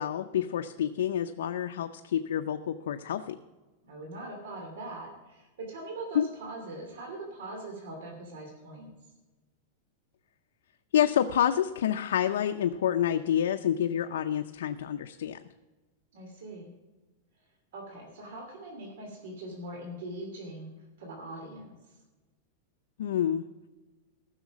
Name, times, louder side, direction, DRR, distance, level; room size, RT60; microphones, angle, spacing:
voice 1, 0.0-3.4 6.1-6.3 10.9-15.4 23.0-23.4, left 10 dB, 90° left, 5 dB, 0.6 m, -28 dB
voice 2, 3.8-8.9 16.1-16.7 17.7-20.7 21.0-22.0, right 2 dB, 75° right, 1 dB, 2.7 m, -42 dB
14.5 x 6.5 x 6.1 m, 1.2 s
supercardioid pair, 160°, 0 cm